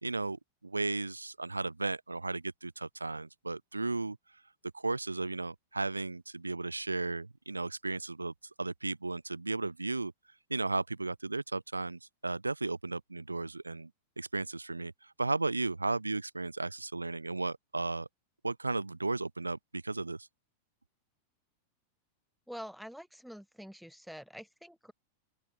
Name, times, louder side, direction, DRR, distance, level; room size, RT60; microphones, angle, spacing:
voice 1, 0.0-0.4 0.6-4.2 4.7-10.1 10.5-13.9 14.2-18.1 18.4-20.2, right 3 dB, 80° right, 0.4 m, -35 dB
voice 2, 22.5-24.9, equal, ahead, 1.6 m, -46 dB
open air
figure-of-eight pair, 90°, 0 cm